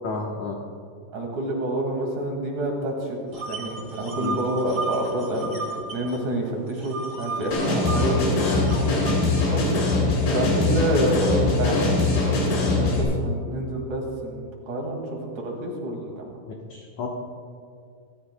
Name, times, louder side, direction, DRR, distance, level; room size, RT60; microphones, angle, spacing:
voice 1, 0.0-0.6 4.2-4.4 16.7-17.1, left 4 dB, 70° left, -1 dB, 1.8 m, -31 dB
voice 2, 1.1-8.5 9.5-9.8 10.3-16.3, right 1 dB, 50° right, 0 dB, 3.1 m, -28 dB
sound 1, 3.3-6.2 6.4-9.1, right 3 dB, 25° right, 1.3 m, -34 dB
sound 2, 7.5-13.0, left 2 dB, 90° left, 5.3 m, -22 dB
25.5 x 14.5 x 2.2 m, 2.2 s
omnidirectional pair, 4.9 m